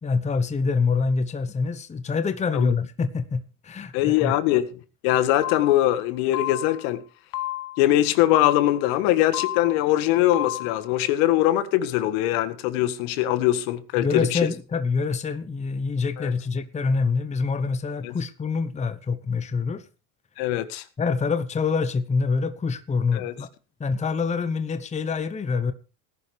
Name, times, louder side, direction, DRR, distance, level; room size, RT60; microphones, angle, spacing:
voice 1, 0.0-4.3 14.0-19.8 21.0-23.5 23.8-25.7, left 4 dB, 15° left, 1.0 m, -25 dB
voice 2, 3.9-4.7 5.0-7.0 7.8-14.4 16.2-16.3 18.0-18.1 20.4-20.8 23.1-23.3, left 14 dB, 65° left, 1.7 m, -22 dB
sound 1, 5.4-5.9 6.3-6.9 7.3-7.9 8.3-8.9 9.3-9.9 10.3-10.9, left 15 dB, 40° left, 0.6 m, -32 dB
18.0 x 11.0 x 3.4 m
hypercardioid pair, 100°, 46 cm